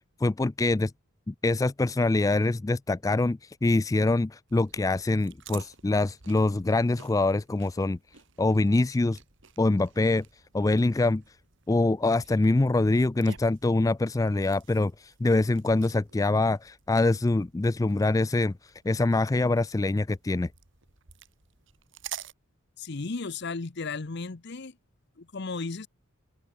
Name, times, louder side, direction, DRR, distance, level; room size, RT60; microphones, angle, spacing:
voice 1, 0.2-0.9 1.3-8.0 8.4-9.2 9.6-10.2 10.5-11.2 11.7-18.5 18.8-20.5, left 2 dB, 15° left, 0.3 m, -24 dB
sound 1, 4.5-22.3, right 7 dB, 60° right, 2.8 m, -50 dB
voice 2, 22.8-24.8 25.2-25.9, left 4 dB, 55° left, 0.8 m, -34 dB
open air
head